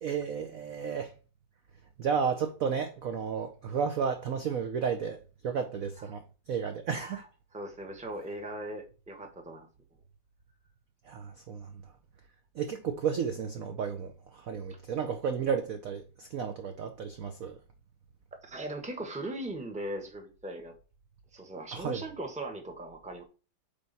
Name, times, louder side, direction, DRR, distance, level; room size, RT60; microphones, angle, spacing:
voice 1, 0.0-1.1 2.0-7.2 11.1-11.7 12.6-17.6 21.7-22.0, right 6 dB, 85° right, 0.7 m, -33 dB
voice 2, 6.9-7.3 7.5-9.7 18.4-20.7 21.3-23.2, right 1 dB, 5° right, 0.7 m, -39 dB
8.6 x 3.4 x 4.1 m
omnidirectional pair, 2.4 m